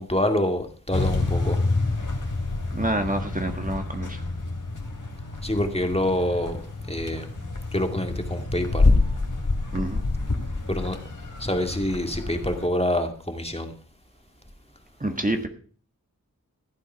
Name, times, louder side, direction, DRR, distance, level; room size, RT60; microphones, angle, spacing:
voice 1, 0.0-1.6 5.4-6.6 6.9-7.3 7.7-8.9 10.7-11.0 11.4-13.7, left 1 dB, 15° left, 6 dB, 2.2 m, -26 dB
sound 1, 0.9-12.7, left 3 dB, 60° left, 3.1 m, -27 dB
voice 2, 2.7-4.2 9.7-10.0 15.0-15.5, right 1 dB, 25° right, 5 dB, 1.6 m, -27 dB
15.0 x 8.4 x 5.7 m, 0.43 s
wide cardioid pair, 50°, 35 cm